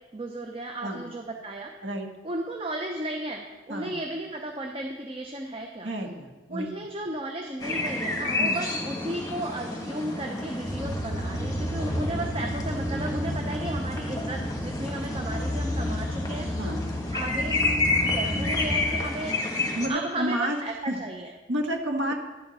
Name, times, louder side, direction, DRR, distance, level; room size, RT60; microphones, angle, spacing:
voice 1, 0.1-1.7 2.2-5.9 6.5-16.5 17.1-19.4 19.9-21.3, right 1 dB, 30° right, 3 dB, 0.7 m, -34 dB
voice 2, 5.8-6.7 8.4-8.6 16.6-16.8 18.1-18.4 19.7-20.6 20.9-21.0 21.5-22.1, right 1 dB, 85° right, 3 dB, 1.5 m, -30 dB
sound 1, 7.6-19.9, left 2 dB, 20° left, 1.3 m, -30 dB
sound 2, 10.6-18.9, equal, 10° right, 1.7 m, -32 dB
11.5 x 8.5 x 4.1 m, 1.2 s
head